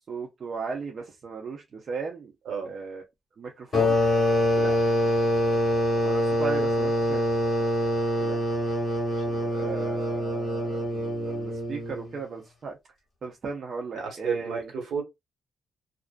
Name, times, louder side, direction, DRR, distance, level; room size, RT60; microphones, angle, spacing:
voice 1, 0.1-2.3 2.7-3.0 3.4-4.0 6.0-7.2 9.5-12.8 13.2-14.7, right 4 dB, 50° right, 0.5 m, -36 dB
sound 1, 3.7-12.1, left 1 dB, 40° left, 1.1 m, -25 dB
voice 2, 9.1-9.5 13.9-15.0, right 5 dB, 75° right, 1.1 m, -34 dB
2.4 x 2.1 x 2.4 m
cardioid pair, 110°, 0 cm